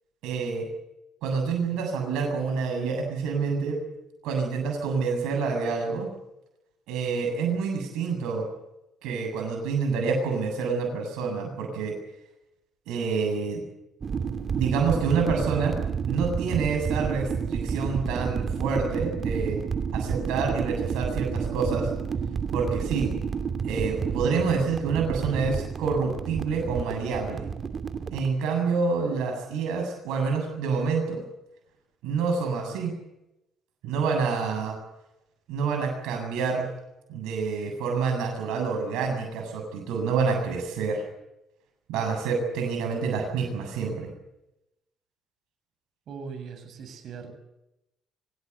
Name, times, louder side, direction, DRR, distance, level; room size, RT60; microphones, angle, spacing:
voice 1, 0.2-0.7 1.2-3.8 4.2-6.1 6.9-8.4 9.0-11.9 12.9-13.6 14.5-15.7 16.0-19.6 19.9-21.9 22.5-23.1 23.6-27.5 28.1-31.2 32.0-32.9 33.8-34.8 35.5-36.7 37.1-41.0 41.9-44.1, right 5 dB, 75° right, 3 dB, 7.7 m, -27 dB
sound 1, 14.0-28.3, right 6 dB, 45° right, 2.7 m, -30 dB
voice 2, 46.1-47.4, right 5 dB, 60° right, 8 dB, 7.5 m, -40 dB
26.5 x 17.0 x 8.2 m, 0.89 s
hypercardioid pair, 60°, 0 cm